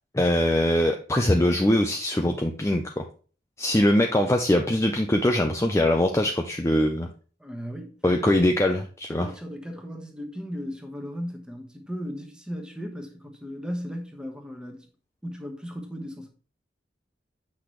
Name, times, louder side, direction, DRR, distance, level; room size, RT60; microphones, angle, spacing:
voice 1, 0.1-3.0 3.6-7.1 8.0-9.3, left 1 dB, 15° left, 0.5 m, -22 dB
voice 2, 7.4-8.4 9.1-14.9 15.2-16.3, equal, 5° right, 1.2 m, -36 dB
8.5 x 6.0 x 3.2 m
head